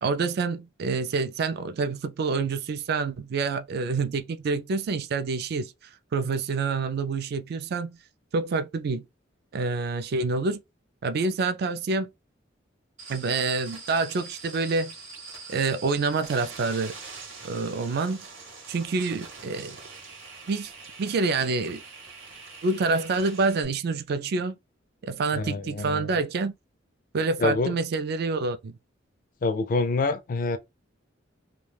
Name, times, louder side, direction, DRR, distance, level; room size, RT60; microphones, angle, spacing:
voice 1, 0.0-5.7 6.1-8.0 8.3-9.0 9.5-10.6 11.0-12.1 13.1-14.9 15.5-16.9 17.4-18.3 18.7-19.8 20.5-20.7 21.0-21.8 22.6-24.6 25.0-26.5 27.1-28.8, right 4 dB, 55° right, 0.4 m, -27 dB
sound 1, 13.0-23.6, right 4 dB, 90° right, 1.0 m, -44 dB
voice 2, 25.3-26.2 27.4-27.8 29.4-30.6, left 3 dB, 45° left, 0.4 m, -26 dB
2.3 x 2.2 x 3.2 m
head